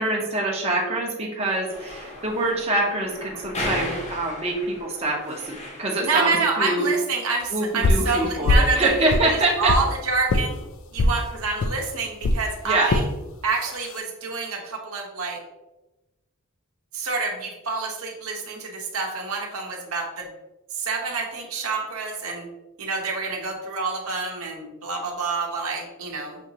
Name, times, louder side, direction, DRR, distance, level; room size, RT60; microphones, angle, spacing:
voice 1, 0.0-6.9 7.5-9.7 12.6-12.9, right 2 dB, 30° right, -2 dB, 0.7 m, -25 dB
sound 1, 1.7-6.2, left 1 dB, 30° left, 0.8 m, -35 dB
voice 2, 6.0-8.9 9.6-10.6 10.9-13.0 13.4-15.4 16.9-20.3 20.7-22.5 22.8-26.4, right 4 dB, 70° right, 0 dB, 0.8 m, -27 dB
sound 2, 7.8-8.1 8.5-8.8 9.1-9.9 10.3-10.5 11.0-11.2 11.6-11.8 12.2-12.4 12.9-13.1 13.7-14.0, left 2 dB, 60° left, 0.4 m, -20 dB
6.1 x 2.8 x 2.8 m, 1.0 s
head